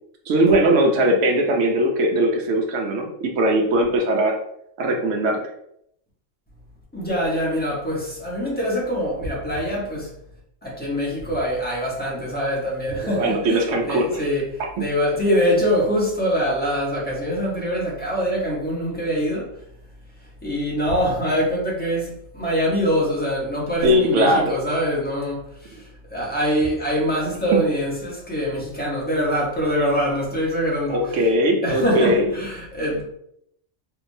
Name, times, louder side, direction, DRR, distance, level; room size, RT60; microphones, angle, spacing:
voice 1, 0.3-4.3 4.8-5.5 13.0-14.2 14.8-14.9 23.8-24.5 27.5-27.6 30.9-32.3, right 1 dB, 75° right, 1 dB, 1.0 m, -20 dB
voice 2, 6.9-10.1 10.6-19.5 20.4-25.8 26.1-31.2 31.6-33.0, equal, 10° left, -6 dB, 1.0 m, -24 dB
3.4 x 2.9 x 2.6 m, 0.73 s
omnidirectional pair, 1.3 m